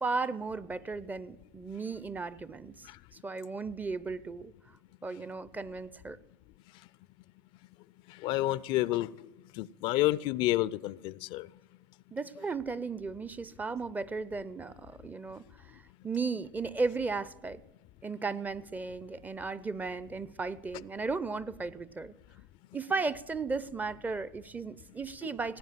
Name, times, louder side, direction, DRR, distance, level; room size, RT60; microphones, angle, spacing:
voice 1, 0.0-2.9 3.2-4.5 5.0-6.2 12.1-17.6 18.0-22.1 22.7-25.6, right 4 dB, 15° right, 0.5 m, -35 dB
voice 2, 8.2-9.1 9.6-11.5, left 16 dB, 50° left, 0.4 m, -29 dB
17.0 x 9.2 x 7.5 m
hypercardioid pair, 85°, 12 cm